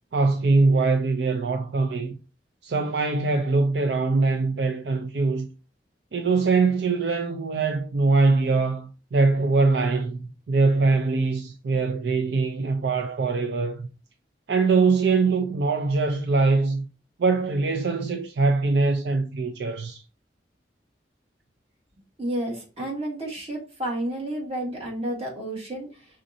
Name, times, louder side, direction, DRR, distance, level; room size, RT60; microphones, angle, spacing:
voice 1, 0.1-2.1 2.6-5.5 6.1-13.9 14.5-16.9 17.2-20.0, right 3 dB, 70° right, 0.5 m, -22 dB
voice 2, 22.2-26.1, right 1 dB, 35° right, 1.8 m, -31 dB
5.1 x 3.8 x 2.6 m
head